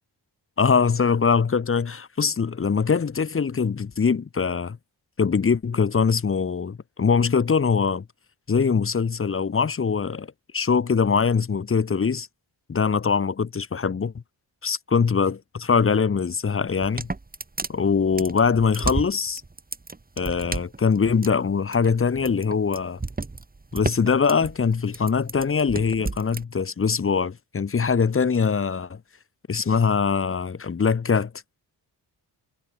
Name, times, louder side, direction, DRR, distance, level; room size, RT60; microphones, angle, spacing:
voice 1, 0.6-4.8 5.2-8.0 8.5-10.3 10.5-12.3 12.7-14.1 14.6-17.1 17.7-19.4 20.2-23.0 23.7-29.0 29.5-31.3, left 5 dB, 30° left, 1.2 m, -22 dB
sound 1, 16.7-26.4, right 3 dB, 20° right, 6.1 m, -32 dB
wide cardioid pair, 145°, 41 cm